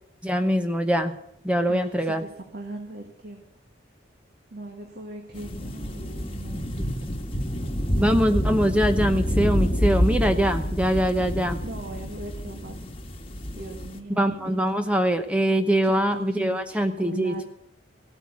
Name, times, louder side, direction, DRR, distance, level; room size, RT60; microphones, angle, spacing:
voice 1, 0.2-1.1 1.4-2.2 8.0-11.6 14.1-17.5, equal, 5° right, 7 dB, 0.8 m, -23 dB
voice 2, 2.2-3.4 4.5-6.9 11.6-12.8 13.5-14.6 15.8-17.5, right 1 dB, 50° right, 2 dB, 1.9 m, -39 dB
sound 1, 5.3-14.0, equal, 30° left, 1.5 m, -27 dB
16.5 x 9.0 x 8.5 m, 0.74 s
head